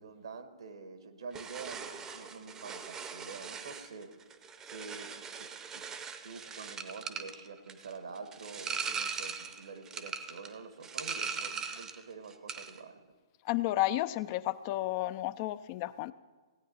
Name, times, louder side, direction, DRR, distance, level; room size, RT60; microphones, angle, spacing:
voice 1, 0.0-4.1 4.6-5.8 6.2-13.0, right 4 dB, 70° right, 8 dB, 1.3 m, -47 dB
sound 1, 1.3-12.0 12.3-12.8, right 6 dB, 20° right, 0.7 m, -40 dB
voice 2, 13.4-16.1, left 16 dB, 35° left, 15 dB, 0.4 m, -32 dB
17.0 x 9.1 x 4.2 m, 1.4 s
figure-of-eight pair, 120°, 3 cm